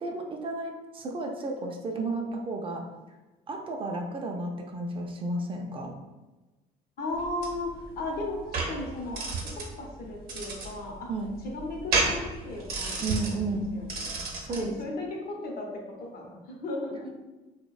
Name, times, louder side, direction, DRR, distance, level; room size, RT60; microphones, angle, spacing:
voice 1, 0.0-2.8 3.5-5.9 11.1-11.3 13.0-13.7 14.4-14.8, right 2 dB, 30° right, 1 dB, 0.3 m, -32 dB
voice 2, 7.0-9.2 9.5-11.1 11.4-14.1 14.5-17.2, left 2 dB, 65° left, 0 dB, 0.6 m, -36 dB
sound 1, 7.1-14.7, right 3 dB, 65° right, 0.7 m, -32 dB
2.6 x 2.1 x 2.3 m, 1.1 s
cardioid pair, 110°, 17 cm